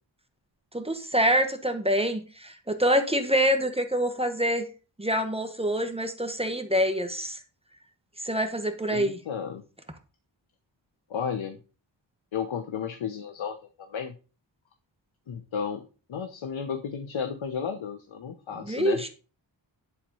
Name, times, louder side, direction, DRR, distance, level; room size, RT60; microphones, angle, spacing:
voice 1, 0.7-4.6 5.0-7.4 8.2-9.2 18.7-19.1, equal, 15° right, 6 dB, 1.4 m, -26 dB
voice 2, 8.9-9.6 11.1-11.6 12.3-14.2 15.3-19.1, left 7 dB, 80° left, 7 dB, 1.0 m, -33 dB
11.0 x 4.3 x 5.5 m, 0.35 s
cardioid pair, 70°, 46 cm